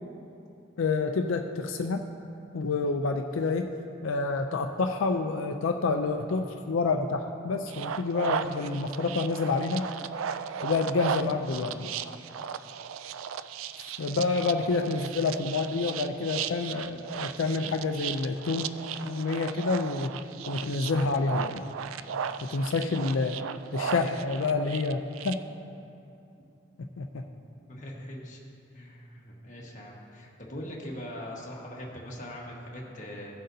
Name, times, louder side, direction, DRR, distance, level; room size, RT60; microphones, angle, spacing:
voice 1, 0.8-2.0 2.5-3.7 4.0-9.9 10.6-11.9 14.0-18.7 19.0-20.1 20.5-21.7 22.5-23.4 23.7-25.4 26.8-27.2, left 3 dB, 85° left, 4 dB, 0.5 m, -28 dB
sound 1, 7.7-25.3, right 7 dB, 90° right, 0.3 m, -36 dB
voice 2, 27.3-28.4 28.7-33.3, equal, 40° left, -2 dB, 1.5 m, -41 dB
16.0 x 7.6 x 2.7 m, 2.6 s
head